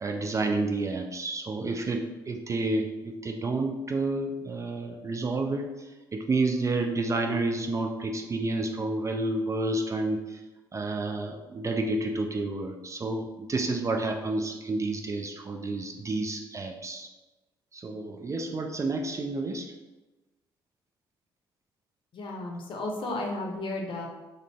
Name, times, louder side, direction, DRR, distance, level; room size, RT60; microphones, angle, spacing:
voice 1, 0.0-5.7 6.1-10.4 10.7-17.1 17.7-19.7, right 2 dB, 25° right, 3 dB, 0.3 m, -30 dB
voice 2, 22.1-24.1, left 2 dB, 45° left, 0 dB, 0.7 m, -33 dB
2.5 x 2.0 x 3.3 m, 1.1 s
hypercardioid pair, 45°, 12 cm